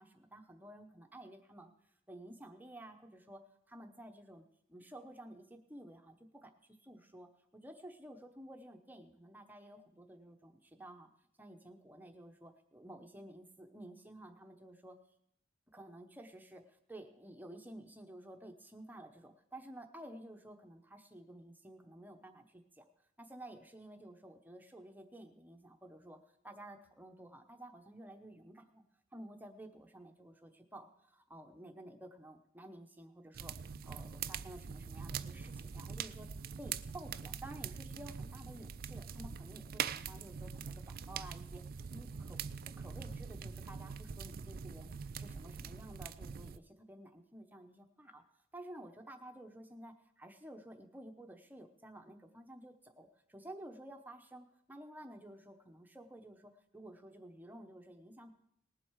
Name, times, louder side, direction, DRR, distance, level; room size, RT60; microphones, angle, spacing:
voice 1, 0.0-1.7 2.1-3.4 3.7-11.1 11.4-15.0 15.7-22.8 23.2-26.2 26.4-28.8 29.1-33.5 33.8-36.3 36.6-48.2 48.5-58.3, right 1 dB, 10° right, 5 dB, 0.9 m, -52 dB
sound 1, 33.3-46.6, right 7 dB, 50° right, 0.4 m, -43 dB
19.0 x 7.7 x 4.7 m, 0.72 s
head